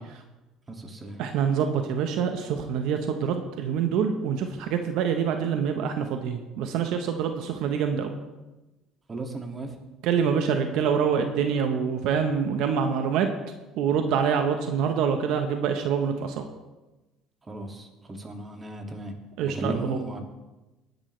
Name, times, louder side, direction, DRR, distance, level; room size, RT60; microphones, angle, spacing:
voice 1, 0.7-1.2 7.3-7.5 9.1-9.7 17.5-19.1 19.5-20.2, right 2 dB, 25° right, 3 dB, 2.3 m, -35 dB
voice 2, 1.2-8.1 10.0-13.3 13.8-16.4 19.4-20.0, right 7 dB, 70° right, 5 dB, 1.1 m, -26 dB
19.0 x 10.5 x 3.3 m, 1.1 s
supercardioid pair, 100°, 0 cm